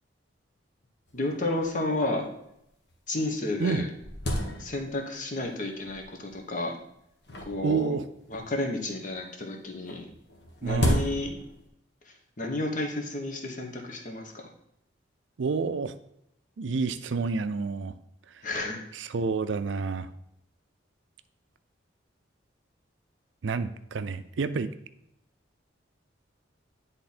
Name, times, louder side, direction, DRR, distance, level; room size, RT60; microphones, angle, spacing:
sound 1, 1.1-1.2 1.4-1.5 2.2-2.3 2.9-3.0 3.4-5.1 5.9-6.3 7.2-8.6 9.8-11.7, equal, 60° left, 1.3 m, -32 dB
voice 1, 1.1-2.3 3.1-3.9 4.6-6.7 7.4-7.9 8.3-10.1 10.6-11.4 12.0-14.5 18.4-18.8, left 2 dB, 40° left, 3 dB, 1.1 m, -31 dB
voice 2, 7.6-8.0 10.6-11.1 15.4-15.9 16.6-17.9 19.1-20.1 23.4-24.7, right 4 dB, 75° right, 12 dB, 0.5 m, -28 dB
10.0 x 3.7 x 4.3 m, 0.79 s
head